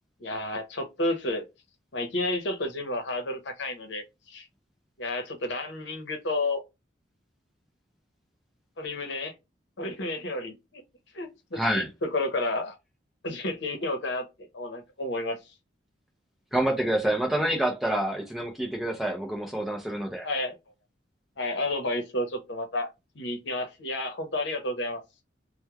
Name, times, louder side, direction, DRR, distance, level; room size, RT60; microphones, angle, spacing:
voice 1, 0.2-1.4 1.9-4.5 5.0-6.6 8.8-9.3 9.8-10.8 11.1-12.8 13.2-14.3 14.5-15.4 20.2-20.6 21.4-22.9 23.1-25.0, left 2 dB, 70° left, 0.8 m, -31 dB
voice 2, 11.6-11.9 16.5-20.3, right 1 dB, ahead, 0.5 m, -27 dB
3.0 x 2.2 x 2.2 m
head